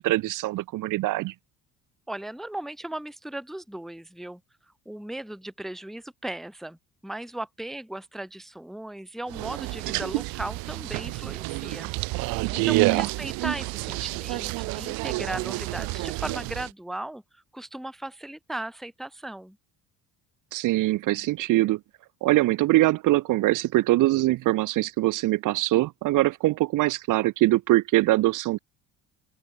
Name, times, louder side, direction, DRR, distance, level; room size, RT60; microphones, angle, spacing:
voice 1, 0.0-1.3 12.6-13.1 20.5-21.8 22.2-28.6, right 17 dB, 65° right, 0.6 m, -23 dB
voice 2, 2.1-4.4 4.9-6.8 7.0-11.9 12.2-19.6, right 1 dB, ahead, 0.5 m, -37 dB
sound 1, 9.3-16.7, right 24 dB, 85° right, 1.1 m, -29 dB
open air
cardioid pair, 90°, 35 cm